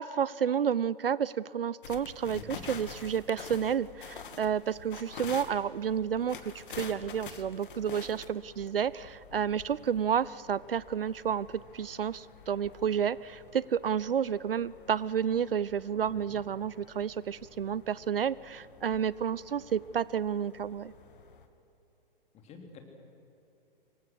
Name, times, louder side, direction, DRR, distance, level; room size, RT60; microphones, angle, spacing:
voice 1, 0.0-11.5 11.7-20.9, right 8 dB, 75° right, 21 dB, 0.6 m, -31 dB
sound 1, 1.8-21.5, left 6 dB, 60° left, 2.1 m, -48 dB
voice 2, 16.1-16.4 22.4-22.8, left 5 dB, 20° left, 3 dB, 3.4 m, -48 dB
26.0 x 22.5 x 6.5 m, 2.9 s
figure-of-eight pair, 110°, 29 cm